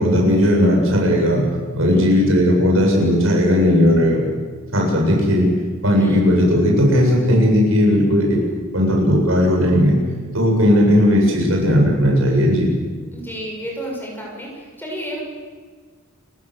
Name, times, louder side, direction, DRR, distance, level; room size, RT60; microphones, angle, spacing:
voice 1, 0.0-1.4 1.7-4.2 4.7-5.5 5.8-8.4 8.7-9.9 10.3-12.7, equal, 80° right, -1 dB, 7.7 m, -16 dB
voice 2, 1.8-2.3 5.9-6.2 13.1-15.2, right 1 dB, 10° left, -1 dB, 6.9 m, -32 dB
30.0 x 16.0 x 8.2 m, 1.5 s
head